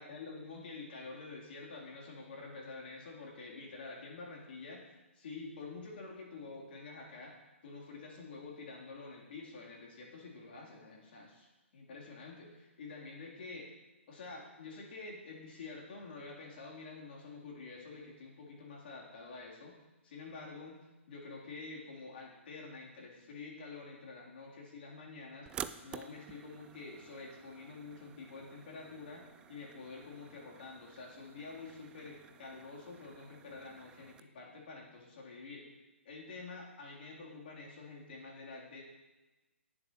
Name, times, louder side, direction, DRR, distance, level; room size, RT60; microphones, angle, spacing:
voice 1, 0.0-7.3 7.6-11.5 11.7-13.7 14.1-19.7 20.0-20.8 21.1-25.5 25.8-29.2 29.5-35.6 36.0-38.8, left 3 dB, 50° left, -3 dB, 3.3 m, -48 dB
sound 1, 25.5-34.2, right 8 dB, 10° right, 0.3 m, -51 dB
18.5 x 7.1 x 3.0 m, 1.2 s
figure-of-eight pair, 125°, 7 cm